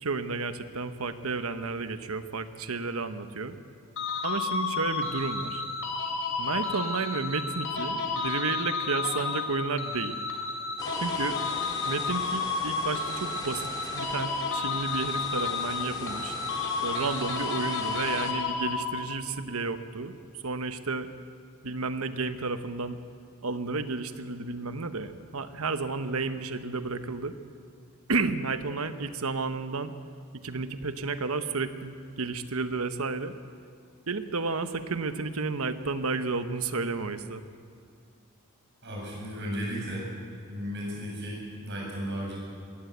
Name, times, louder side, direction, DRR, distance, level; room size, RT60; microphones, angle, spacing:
voice 1, 0.0-3.6 4.2-5.6 6.4-10.2 11.0-11.4 11.9-16.3 16.8-20.2 20.4-21.1 21.6-23.0 23.4-27.3 28.1-29.9 30.4-33.3 34.1-37.4, right 4 dB, 85° right, 10 dB, 1.1 m, -32 dB
sound 1, 4.0-19.2, left 4 dB, 65° left, 2.9 m, -31 dB
sound 2, 10.8-18.3, left 2 dB, 20° left, 2.0 m, -41 dB
voice 2, 38.8-40.1 40.4-42.4, equal, 55° right, -3 dB, 7.9 m, -35 dB
21.5 x 17.0 x 8.1 m, 2.3 s
head